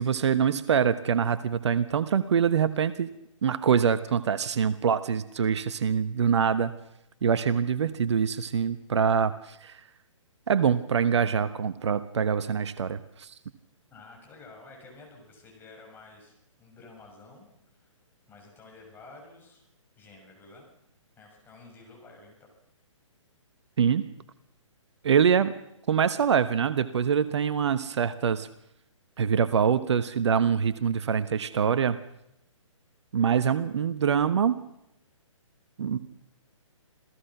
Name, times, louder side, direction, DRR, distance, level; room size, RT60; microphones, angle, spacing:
voice 1, 0.0-3.1 3.4-6.7 7.2-9.8 10.5-13.3 23.8-24.1 25.0-25.5 25.9-28.5 29.2-32.0 33.1-34.6 35.8-36.0, right 7 dB, 60° right, 12 dB, 1.1 m, -24 dB
voice 2, 13.9-17.5 17.8-17.9 18.3-19.6 20.0-20.7 21.2-22.4, left 3 dB, 10° left, 0 dB, 6.3 m, -51 dB
27.5 x 17.0 x 6.0 m, 0.83 s
figure-of-eight pair, 135°, 17 cm